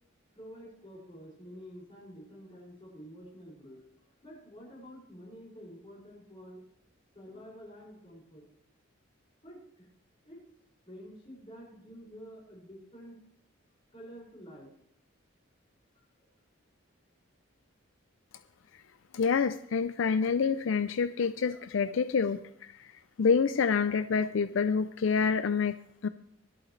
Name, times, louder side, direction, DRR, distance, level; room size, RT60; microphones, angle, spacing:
voice 1, 0.3-3.8 4.2-6.6 7.1-8.5 9.4-9.9 10.2-10.4 10.9-13.2 13.9-14.7 15.9-16.1, equal, 30° left, -4 dB, 5.7 m, -49 dB
voice 2, 19.1-22.9 23.2-26.1, left 5 dB, 70° left, 13 dB, 0.4 m, -27 dB
24.0 x 8.6 x 3.2 m, 0.74 s
head